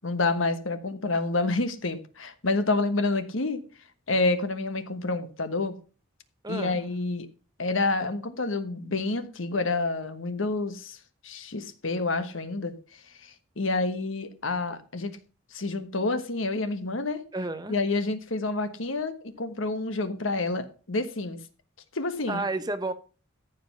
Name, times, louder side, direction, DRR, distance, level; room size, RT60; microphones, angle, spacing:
voice 1, 0.0-3.6 4.1-5.7 6.5-7.3 7.6-11.0 11.2-12.7 13.2-15.2 15.5-17.2 17.7-21.4 21.9-22.4, left 3 dB, 75° left, 1.3 m, -28 dB
voice 2, 6.4-6.8 17.3-17.8 22.3-22.9, right 2 dB, 20° right, 0.8 m, -31 dB
14.0 x 5.2 x 5.6 m
head